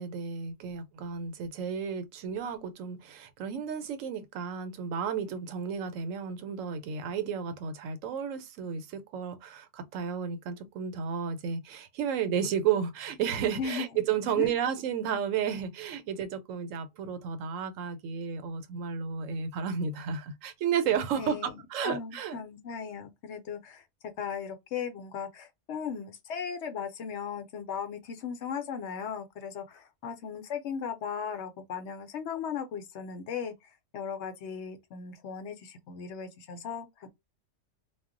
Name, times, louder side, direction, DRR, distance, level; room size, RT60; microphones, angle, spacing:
voice 1, 0.0-22.4, right 7 dB, 85° right, 1.0 m, -32 dB
voice 2, 21.2-23.8 24.2-33.5 33.9-37.1, left 7 dB, 70° left, 0.9 m, -37 dB
2.3 x 2.1 x 3.7 m
omnidirectional pair, 1.3 m